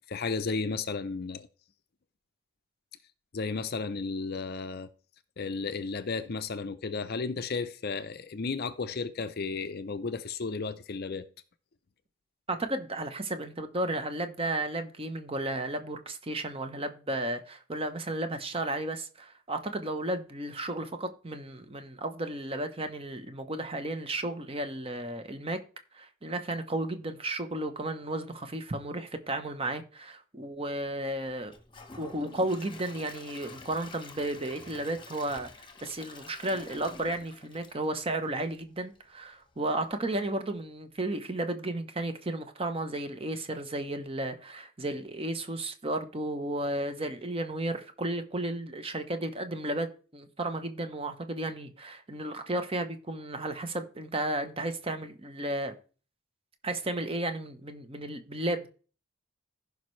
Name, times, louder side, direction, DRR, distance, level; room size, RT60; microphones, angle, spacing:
voice 1, 0.1-1.5 3.3-4.9 5.4-11.3, left 4 dB, 45° left, 0.5 m, -33 dB
voice 2, 12.5-25.6 25.9-31.5 32.0-35.5 35.8-55.7 56.6-58.7, right 1 dB, 25° right, 0.8 m, -33 dB
Gurgling / Toilet flush / Trickle dribble, 31.5-38.5 38.9-39.0 39.5-39.6, left 3 dB, 20° left, 1.0 m, -48 dB
15.5 x 5.3 x 3.2 m
head